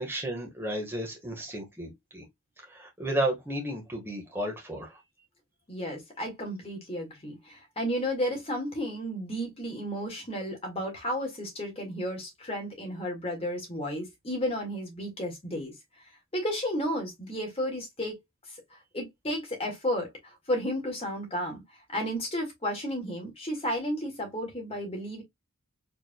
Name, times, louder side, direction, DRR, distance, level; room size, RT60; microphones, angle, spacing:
voice 1, 0.0-2.2 2.6-5.0, right 1 dB, 10° right, 1.5 m, -33 dB
voice 2, 5.7-15.7 16.3-18.2 18.9-21.6 21.9-25.2, equal, 30° left, 1.9 m, -33 dB
4.5 x 3.6 x 2.3 m
head